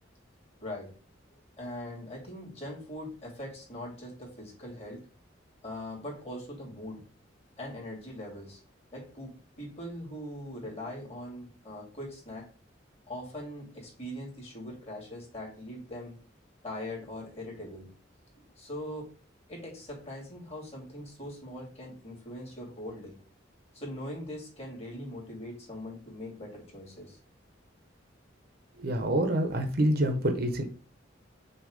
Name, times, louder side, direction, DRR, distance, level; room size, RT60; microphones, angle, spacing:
voice 1, 0.6-0.9 1.6-5.0 5.6-7.0 7.6-8.6 8.9-12.5 13.1-16.2 16.6-17.9 18.6-19.1 19.5-23.2 23.7-27.2, left 1 dB, 35° left, -3 dB, 2.8 m, -41 dB
voice 2, 28.8-30.7, right 1 dB, 55° right, 6 dB, 1.0 m, -26 dB
6.2 x 3.0 x 5.2 m, 0.38 s
head